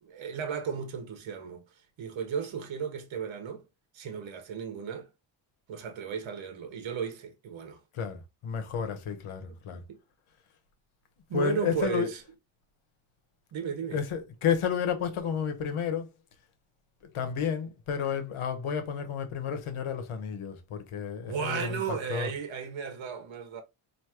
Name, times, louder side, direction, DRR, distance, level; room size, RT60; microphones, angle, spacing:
voice 1, 0.0-1.6 2.0-3.6 3.9-5.1 5.7-7.8 9.9-10.0 11.3-12.2 13.5-14.0 21.2-23.6, right 6 dB, 70° right, 1.2 m, -34 dB
voice 2, 7.9-9.8 11.3-12.1 13.9-16.1 17.1-22.3, left 7 dB, 80° left, 1.1 m, -31 dB
4.7 x 2.9 x 2.9 m
wide cardioid pair, 125°, 48 cm